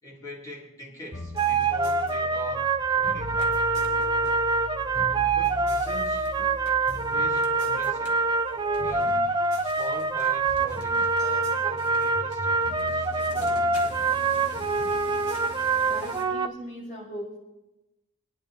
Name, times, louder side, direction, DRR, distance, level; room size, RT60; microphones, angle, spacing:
voice 1, 0.0-4.0 5.3-6.3 7.1-8.2 8.7-13.9, equal, 15° left, 4.1 m, -43 dB
sound 1, 1.1-16.4, left 1 dB, 65° left, 6.6 m, -41 dB
sound 2, 1.3-16.5, right 4 dB, 20° right, 0.6 m, -25 dB
sound 3, 3.2-16.2, left 1 dB, 85° left, 2.5 m, -49 dB
voice 2, 15.9-17.4, equal, 40° left, 6.4 m, -38 dB
28.5 x 10.0 x 3.8 m
head